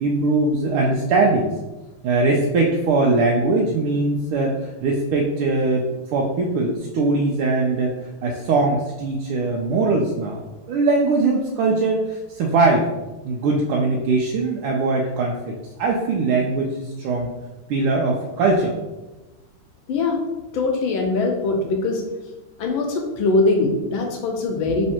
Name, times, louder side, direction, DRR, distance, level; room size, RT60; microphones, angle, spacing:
voice 1, 0.0-1.5 2.0-8.0 8.2-12.9 13.2-17.3 17.7-18.7 24.7-24.8, right 3 dB, 85° right, -1 dB, 1.5 m, -21 dB
voice 2, 19.9-20.2 20.5-22.0 22.6-24.9, left 3 dB, 75° left, 2 dB, 1.3 m, -22 dB
3.5 x 3.1 x 4.3 m, 1.1 s
omnidirectional pair, 2.4 m